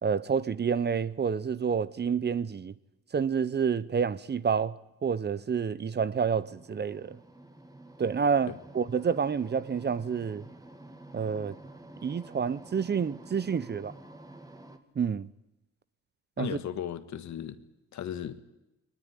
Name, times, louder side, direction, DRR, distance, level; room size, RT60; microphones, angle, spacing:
voice 1, 0.0-2.7 3.1-4.8 5.0-7.2 8.0-10.4 11.1-11.5 12.0-13.9 15.0-15.3 16.4-16.6, right 6 dB, 35° right, 0.8 m, -28 dB
sound 1, 6.2-14.8, right 1 dB, 10° right, 2.2 m, -49 dB
voice 2, 16.4-17.6 17.9-18.4, left 9 dB, 65° left, 1.8 m, -36 dB
22.5 x 20.0 x 9.9 m
cardioid pair, 90°, 30 cm